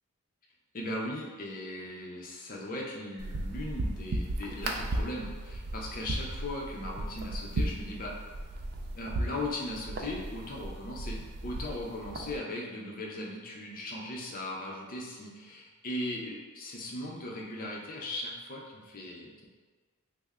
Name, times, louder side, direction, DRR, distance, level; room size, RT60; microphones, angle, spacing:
voice 1, 0.7-8.1 8.9-19.5, left 1 dB, 45° left, -2 dB, 0.6 m, -38 dB
sound 1, 3.2-12.4, right 1 dB, 50° right, 0.4 m, -36 dB
3.3 x 2.1 x 3.5 m, 1.4 s
head